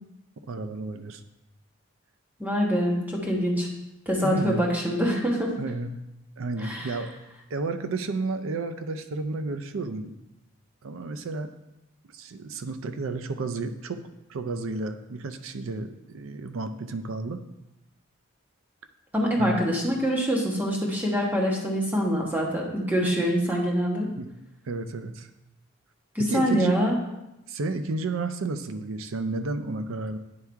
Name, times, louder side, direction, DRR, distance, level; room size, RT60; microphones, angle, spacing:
voice 1, 0.5-1.2 4.2-4.7 5.6-6.0 6.4-7.1 7.5-10.2 10.8-11.5 12.1-14.0 14.3-17.4 19.4-19.6 24.2-24.3 24.7-25.3 26.2-26.8 27.5-30.2, right 3 dB, 75° right, 9 dB, 0.5 m, -32 dB
voice 2, 2.4-3.7 4.1-5.5 6.6-6.9 19.1-24.1 26.1-27.0, equal, 10° right, -2 dB, 1.3 m, -25 dB
9.6 x 3.5 x 4.5 m, 0.92 s
head